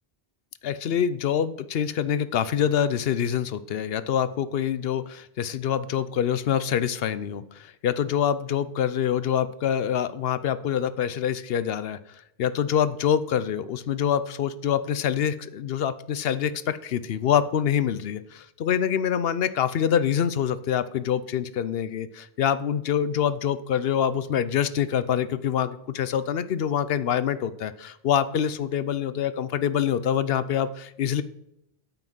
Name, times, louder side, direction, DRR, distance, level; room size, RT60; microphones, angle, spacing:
voice 1, 0.6-12.0 12.4-31.2, left 9 dB, 75° left, 15 dB, 0.8 m, -25 dB
9.0 x 5.8 x 6.1 m, 0.80 s
omnidirectional pair, 1.0 m